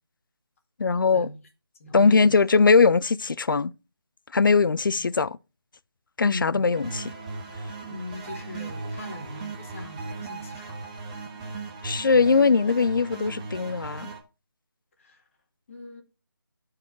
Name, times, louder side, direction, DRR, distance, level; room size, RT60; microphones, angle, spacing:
voice 1, 0.8-1.3 1.9-3.7 4.3-5.4 6.2-7.0 11.8-14.1, left 4 dB, 60° left, 0.5 m, -20 dB
voice 2, 1.8-2.7 5.0-5.1 6.2-6.7 7.9-10.8 15.0-15.2 15.7-16.0, left 2 dB, 35° left, 2.0 m, -40 dB
sound 1, 6.7-14.2, right 3 dB, 15° right, 1.1 m, -37 dB
13.0 x 4.8 x 4.5 m
figure-of-eight pair, 160°, 12 cm